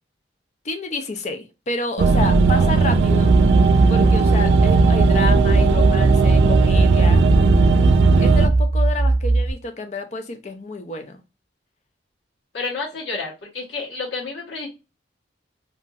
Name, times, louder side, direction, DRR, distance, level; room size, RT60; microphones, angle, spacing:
voice 1, 0.6-3.3 3.9-7.2 8.2-11.2, left 2 dB, 40° left, 7 dB, 0.5 m, -29 dB
sound 1, 2.0-8.5, right 4 dB, 70° right, 0.3 m, -17 dB
sound 2, 3.1-9.5, right 2 dB, 20° right, 0.8 m, -19 dB
voice 2, 12.5-14.7, left 4 dB, 85° left, -5 dB, 1.1 m, -30 dB
2.9 x 2.5 x 2.2 m, 0.28 s
head